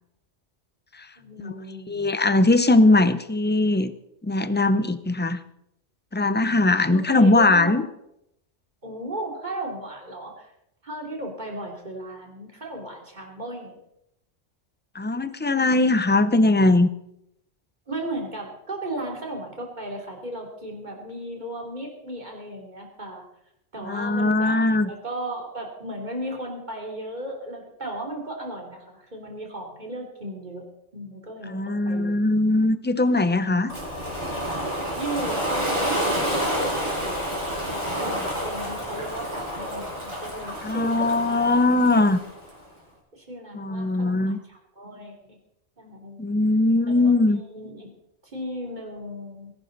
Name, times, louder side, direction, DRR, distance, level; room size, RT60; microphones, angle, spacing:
voice 1, 1.2-2.1 6.9-7.9 8.8-10.5 10.8-13.8 17.9-23.2 23.7-30.7 30.9-32.2 34.9-41.6 43.1-45.4 45.8-46.2 46.8-47.9 48.3-49.5, right 1 dB, 40° right, 1 dB, 3.4 m, -35 dB
voice 2, 1.9-3.9 4.2-5.4 6.1-7.9 14.9-16.9 23.8-24.9 31.5-33.7 40.6-42.2 43.5-44.4 46.2-47.4, left 2 dB, 10° left, 12 dB, 0.5 m, -20 dB
Ocean, 33.7-42.5, equal, 25° right, 5.0 m, -29 dB
20.5 x 11.5 x 4.1 m, 0.79 s
omnidirectional pair, 1.2 m